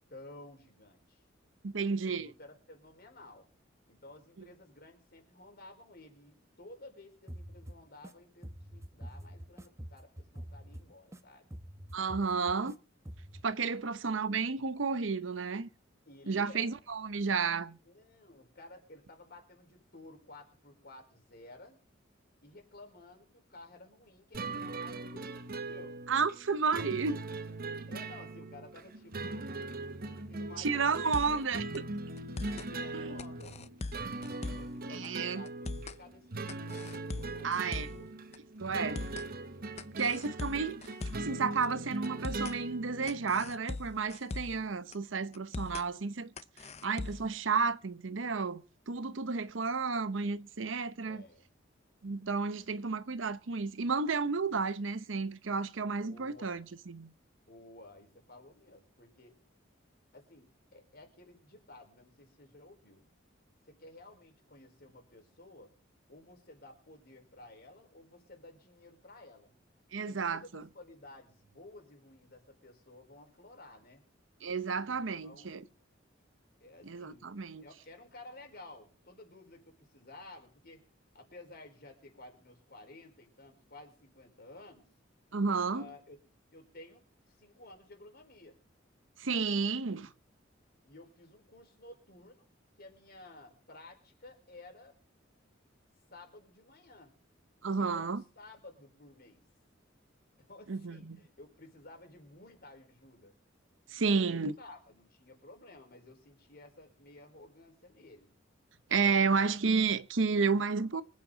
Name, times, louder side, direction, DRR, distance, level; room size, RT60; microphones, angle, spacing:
voice 1, 0.1-1.2 1.7-3.5 3.9-11.5 16.0-16.8 17.8-21.8 22.4-26.0 27.9-29.5 30.0-31.7 32.6-33.6 34.5-37.5 37.9-38.1 51.0-51.5 56.0-56.6 57.5-59.3 60.1-63.0 63.6-65.7 66.1-69.5 70.0-74.0 74.8-75.7 76.6-77.3 77.6-80.8 81.1-84.9 85.7-86.2 86.5-88.6 90.8-92.5 92.8-94.9 96.1-97.2 97.7-99.4 100.4-103.4 104.0-108.3, left 2 dB, 55° left, 4.6 m, -54 dB
voice 2, 1.6-2.3 11.9-12.8 13.4-15.7 16.3-17.8 26.1-27.2 30.6-31.8 32.9-33.1 34.9-35.4 37.4-37.9 38.6-39.0 40.0-46.3 46.8-51.2 52.0-57.1 69.9-70.7 74.4-75.6 76.8-77.6 85.3-85.9 89.2-90.1 97.6-98.2 100.7-101.0 103.9-104.5 108.9-111.0, right 5 dB, 75° right, 0.8 m, -32 dB
sound 1, 7.3-8.1 8.4-11.2 11.5-12.7 13.1-13.4, equal, 15° right, 1.0 m, -46 dB
sound 2, 24.3-43.5, right 2 dB, 50° right, 1.1 m, -40 dB
sound 3, 30.9-31.5 31.7-31.8 32.2-32.7 33.2-34.8 35.0-35.1 35.5-36.0 36.5-38.0 38.3-38.4 38.7-39.3 39.8-41.3 41.6-41.7 42.0-42.6 43.1-44.6 44.9-45.0 45.3-45.9 46.4-47.3, left 3 dB, 35° left, 0.6 m, -40 dB
24.5 x 8.6 x 4.0 m
head